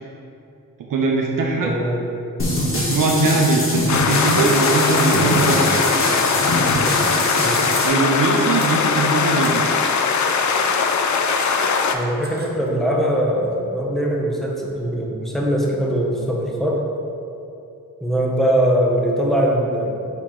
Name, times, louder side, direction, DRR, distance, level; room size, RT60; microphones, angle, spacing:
voice 1, 0.9-1.7 2.7-5.6 7.8-9.7, right 3 dB, 65° right, -1 dB, 0.7 m, -20 dB
voice 2, 1.6-2.0 7.4-7.6 11.9-16.9 18.0-20.1, equal, ahead, -2 dB, 0.8 m, -21 dB
sound 1, 2.4-7.9, left 1 dB, 40° left, 1.3 m, -23 dB
sound 2, 2.6-3.0 3.3-3.9 4.2-4.6 5.1-5.6 5.9-6.5 6.8-7.2 7.7-8.9 9.4-9.7 11.0-11.1 11.4-12.7, right 3 dB, 30° right, 0.7 m, -39 dB
sound 3, 3.9-12.0, left 5 dB, 55° left, 0.5 m, -20 dB
5.9 x 4.5 x 3.8 m, 2.7 s
wide cardioid pair, 110°, 35 cm